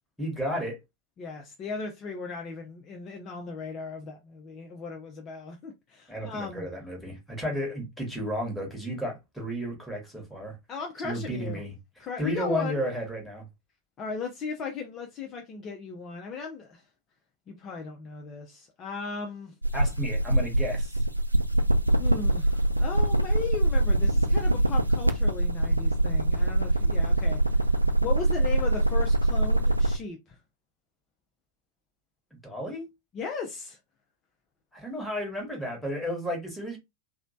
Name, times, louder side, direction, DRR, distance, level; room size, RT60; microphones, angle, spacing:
voice 1, 0.2-0.8 6.1-10.6 11.0-11.7 12.2-13.5 19.7-21.0 32.4-32.8 34.7-36.8, equal, ahead, 1.2 m, -32 dB
voice 2, 1.2-6.7 10.7-11.6 12.0-12.8 14.0-16.9 17.5-19.5 22.0-30.4 33.1-33.8, left 5 dB, 30° left, 0.5 m, -37 dB
sound 1, 19.6-30.0, right 1 dB, 85° right, 0.3 m, -23 dB
3.0 x 2.0 x 2.6 m
figure-of-eight pair, 90°, 0 cm